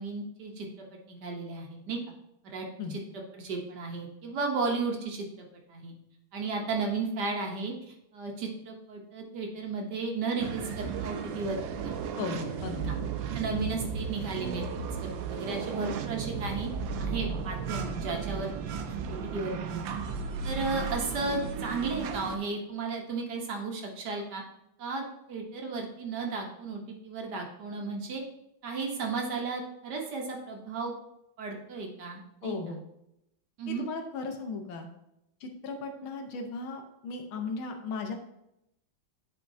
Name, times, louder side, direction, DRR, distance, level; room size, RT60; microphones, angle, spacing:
voice 1, 0.0-2.0 2.4-3.0 3.4-5.9 6.3-11.9 12.9-13.0 13.3-14.6 15.0-16.7 17.0-18.8 19.1-19.8 20.4-24.4 24.8-28.2 28.6-30.9 31.4-32.8 33.6-33.9, right 4 dB, 60° right, 1 dB, 1.4 m, -34 dB
sound 1, 10.4-22.4, right 5 dB, 75° right, 1.3 m, -35 dB
voice 2, 12.2-13.0 32.4-32.8 33.7-34.9 35.4-38.1, left 4 dB, 80° left, 4 dB, 1.7 m, -36 dB
10.5 x 4.5 x 2.7 m, 0.83 s
omnidirectional pair, 2.2 m